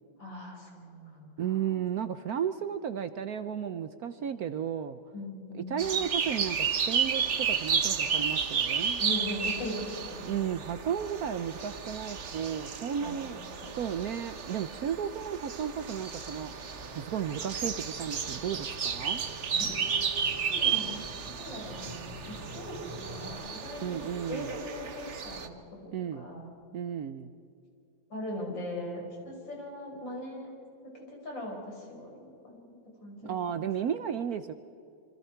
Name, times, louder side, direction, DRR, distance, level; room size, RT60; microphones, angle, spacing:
voice 1, 0.2-1.6 5.1-5.7 9.0-10.4 12.8-13.2 13.6-13.7 19.5-21.0 21.3-25.6 26.1-26.5 28.1-30.5 30.9-33.6, left 1 dB, 75° left, -1 dB, 5.9 m, -40 dB
voice 2, 1.4-5.0 5.5-9.0 10.2-13.4 13.7-16.5 16.9-19.2 23.8-24.5 25.9-26.3 26.7-27.3 33.2-34.5, right 8 dB, 65° right, 11 dB, 1.0 m, -34 dB
sound 1, 5.8-25.5, right 6 dB, 45° right, 1.2 m, -33 dB
Car / Engine, 16.1-23.3, equal, 20° right, 3.7 m, -49 dB
27.5 x 25.0 x 4.5 m, 2.6 s
omnidirectional pair, 2.1 m